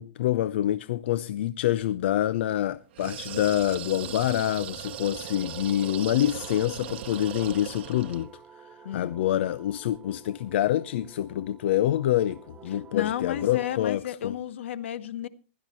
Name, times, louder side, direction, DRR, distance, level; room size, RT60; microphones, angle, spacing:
voice 1, 0.0-8.3 8.6-14.3, left 12 dB, 65° left, 0.6 m, -26 dB
sound 1, 2.9-8.3, right 12 dB, 60° right, 1.3 m, -38 dB
sound 2, 3.9-6.6, equal, 50° left, 2.5 m, -53 dB
sound 3, 4.8-13.8, right 7 dB, 15° right, 0.7 m, -51 dB
voice 2, 8.8-9.2 12.9-15.3, left 11 dB, 80° left, 1.1 m, -32 dB
16.0 x 12.0 x 4.3 m
supercardioid pair, 160°, 6 cm